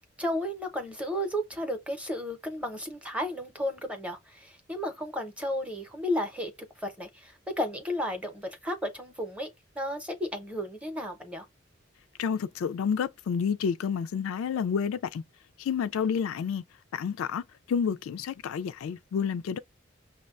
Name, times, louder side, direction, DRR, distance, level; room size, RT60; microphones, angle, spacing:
voice 1, 0.2-9.5 9.7-11.5, left 1 dB, 5° right, 0.6 m, -33 dB
voice 2, 12.2-15.2 15.6-16.6 16.9-19.6, left 6 dB, 85° left, 0.3 m, -29 dB
5.8 x 2.2 x 2.4 m
head